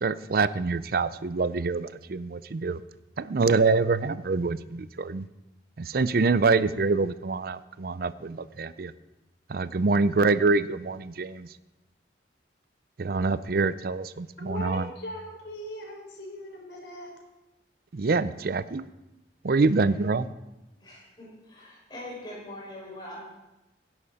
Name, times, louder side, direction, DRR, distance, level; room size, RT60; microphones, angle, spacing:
voice 1, 0.0-2.8 3.2-5.3 5.8-8.9 9.5-11.5 13.0-14.9 17.9-18.9 19.4-20.3, right 4 dB, 55° right, 15 dB, 0.5 m, -25 dB
voice 2, 14.4-17.1, left 1 dB, 85° left, 1 dB, 4.0 m, -39 dB
voice 3, 20.8-23.2, left 1 dB, 25° left, -4 dB, 5.7 m, -43 dB
16.5 x 11.0 x 4.2 m, 1.0 s
head